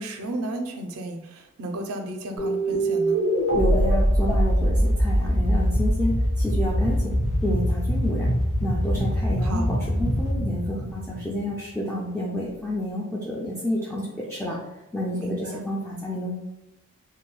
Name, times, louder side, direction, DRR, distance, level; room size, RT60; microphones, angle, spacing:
voice 1, 0.0-3.2 9.4-9.7 15.1-15.6, right 1 dB, 75° right, 4 dB, 0.5 m, -33 dB
sound 1, 2.4-11.7, equal, 75° left, 0.9 m, -23 dB
voice 2, 3.5-7.1 7.4-8.3 8.6-14.6 14.9-16.5, left 1 dB, 10° left, -5 dB, 0.3 m, -29 dB
2.6 x 2.2 x 3.1 m, 0.96 s
head